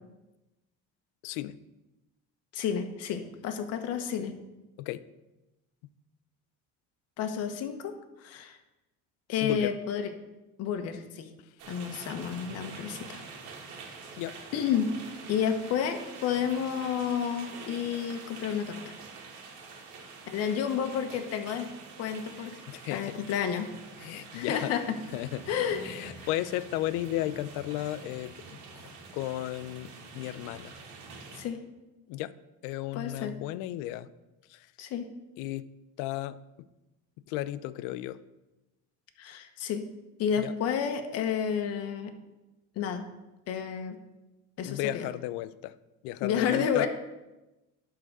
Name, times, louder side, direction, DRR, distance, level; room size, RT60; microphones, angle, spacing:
voice 1, 1.2-1.6 4.8-5.0 5.8-5.9 9.4-9.7 14.2-14.4 20.4-20.5 22.7-23.2 24.0-24.7 25.1-25.5 25.7-28.3 28.7-30.8 32.1-32.3 32.6-34.1 34.5-34.7 35.4-35.7 36.0-36.7 37.3-38.2 40.4-40.5 44.6-45.7 46.0-46.9, left 14 dB, 85° left, 15 dB, 0.5 m, -34 dB
voice 2, 2.5-4.3 7.2-8.6 9.3-10.1 10.6-11.3 11.7-13.2 14.5-14.9 15.3-18.9 20.2-21.7 22.0-22.6 22.9-23.7 24.3-25.0 25.5-25.8 26.2-26.3 31.3-31.6 32.9-33.3 34.8-35.1 39.2-39.8 40.2-42.1 42.8-43.1 43.5-44.0 44.6-45.0 46.2-46.9, left 8 dB, 55° left, 6 dB, 1.0 m, -30 dB
sound 1, 11.6-31.4, right 4 dB, 75° right, 1.8 m, -46 dB
11.0 x 3.8 x 6.6 m, 1.0 s
cardioid pair, 145°, 30 cm